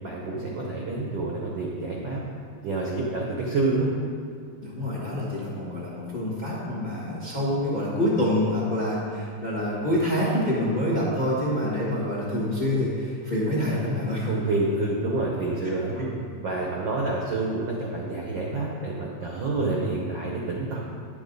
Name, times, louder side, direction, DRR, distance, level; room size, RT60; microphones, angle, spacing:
voice 1, 0.0-2.2 2.6-3.9 14.2-16.1 16.4-20.8, right 2 dB, 90° right, -3 dB, 1.0 m, -28 dB
voice 2, 4.6-14.3 16.0-16.1, left 1 dB, 25° left, -6 dB, 0.9 m, -26 dB
9.9 x 7.1 x 3.9 m, 2.2 s
omnidirectional pair, 3.4 m